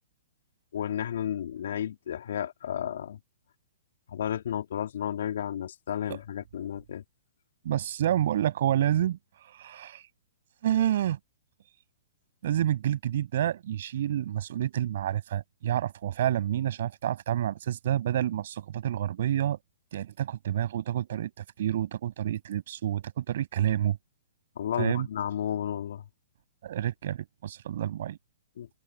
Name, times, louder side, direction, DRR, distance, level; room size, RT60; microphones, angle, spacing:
voice 1, 0.7-3.2 4.1-7.0 24.6-26.0 28.6-28.7, left 9 dB, 65° left, 3.3 m, -32 dB
voice 2, 7.6-10.0 10.6-11.2 12.4-19.6 19.9-24.0 24.8-25.1 26.6-28.2, right 11 dB, 60° right, 6.4 m, -29 dB
hypercardioid pair, 125°, 0 cm